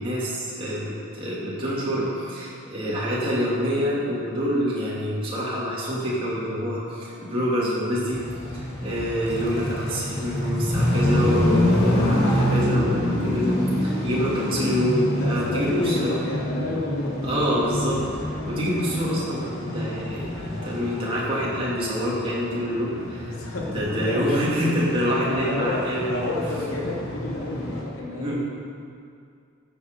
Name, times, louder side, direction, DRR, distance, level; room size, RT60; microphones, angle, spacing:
voice 1, 0.0-8.2 8.5-16.2 17.2-23.3 23.7-26.2 28.1-28.4, equal, 25° right, -8 dB, 2.8 m, -26 dB
sound 1, 8.1-27.8, left 1 dB, 55° left, 2.4 m, -27 dB
voice 2, 15.2-17.5 23.2-24.4 25.3-28.4, left 2 dB, 85° left, -3 dB, 2.3 m, -30 dB
14.0 x 7.8 x 5.4 m, 2.3 s
head